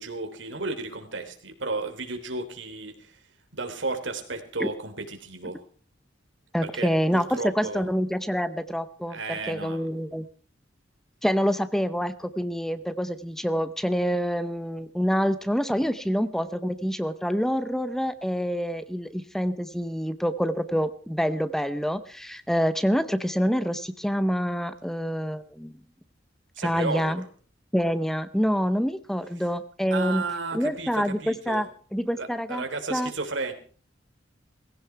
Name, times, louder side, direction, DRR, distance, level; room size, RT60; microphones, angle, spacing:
voice 1, 0.0-3.2 3.5-5.6 6.7-7.9 9.1-9.9 26.6-27.2 29.9-31.7 32.2-33.5, right 3 dB, 90° right, 6 dB, 3.3 m, -33 dB
voice 2, 6.5-10.2 11.2-25.7 26.6-27.2 27.7-30.2 30.5-32.6 32.9-33.1, equal, ahead, 13 dB, 0.7 m, -26 dB
19.0 x 16.0 x 4.6 m, 0.42 s
head